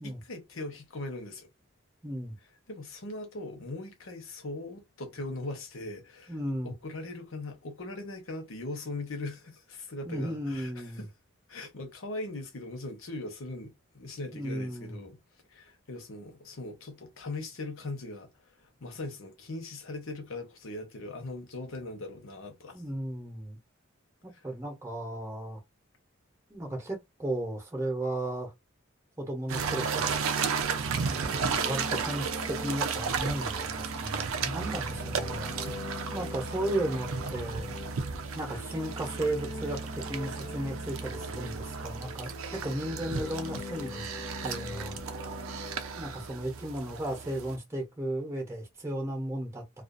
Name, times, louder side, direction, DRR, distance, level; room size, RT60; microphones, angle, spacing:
voice 1, 0.0-1.5 2.7-6.4 6.6-11.1 11.5-15.2 15.5-18.3 18.6-22.8, left 2 dB, 75° left, 0.9 m, -40 dB
voice 2, 2.0-2.4 6.3-6.7 10.0-11.0 14.3-15.0 22.7-23.6 24.4-25.6 26.5-28.5 29.2-30.2 31.1-35.5 36.1-37.7 38.3-44.1 44.4-45.0 46.0-49.6, right 1 dB, 15° right, 0.8 m, -35 dB
sound 1, 29.5-47.6, right 5 dB, 80° right, 0.5 m, -34 dB
sound 2, 30.6-46.3, left 3 dB, 25° left, 0.6 m, -44 dB
2.4 x 2.4 x 2.5 m
head